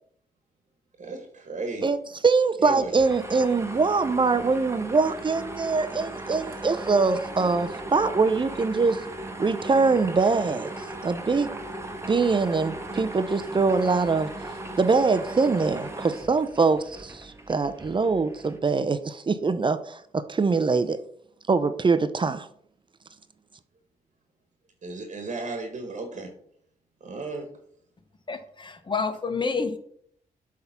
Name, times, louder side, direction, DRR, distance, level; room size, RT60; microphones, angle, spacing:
voice 1, 1.0-1.9 2.6-2.9 24.8-26.3 27.0-27.5, right 3 dB, 55° right, 4 dB, 1.3 m, -34 dB
voice 2, 2.2-9.0 9.4-10.7 11.0-11.5 12.1-14.3 14.8-21.0 21.5-22.5, right 4 dB, 35° right, 12 dB, 0.6 m, -23 dB
sound 1, 2.8-18.6, right 1 dB, 20° right, 1.2 m, -38 dB
voice 3, 28.3-29.8, left 4 dB, 35° left, 9 dB, 1.0 m, -28 dB
7.9 x 3.6 x 5.8 m, 0.66 s
cardioid pair, 65°, 15 cm